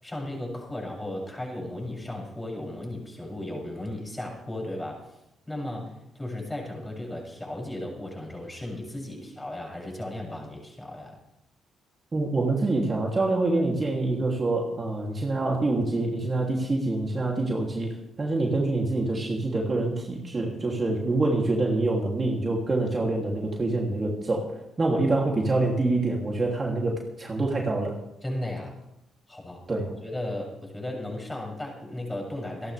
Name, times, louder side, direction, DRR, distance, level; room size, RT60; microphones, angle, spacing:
voice 1, 0.0-5.2 5.5-11.2 25.2-25.3 28.2-28.7 29.3-29.6 30.0-32.7, left 1 dB, 10° left, -1 dB, 7.4 m, -35 dB
voice 2, 12.1-24.5 24.8-28.0 29.7-29.9, right 2 dB, 30° right, -1 dB, 3.0 m, -26 dB
27.5 x 11.5 x 3.5 m, 0.88 s
cardioid pair, 90°, 0 cm